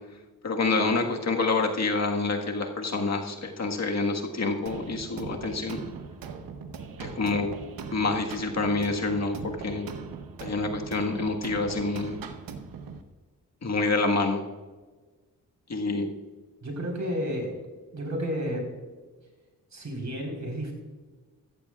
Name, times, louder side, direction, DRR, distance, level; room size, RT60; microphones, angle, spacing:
voice 1, 0.4-5.8 7.0-7.5 7.9-9.9 10.4-12.2 13.6-14.4 15.7-16.1, left 3 dB, 50° left, 2 dB, 1.6 m, -27 dB
sound 1, 4.7-13.0, right 5 dB, 90° right, 0.9 m, -40 dB
voice 2, 16.6-17.5 17.9-18.6 19.7-20.7, equal, 55° right, 1 dB, 4.3 m, -31 dB
14.5 x 14.0 x 2.4 m, 1.3 s
cardioid pair, 70°, 33 cm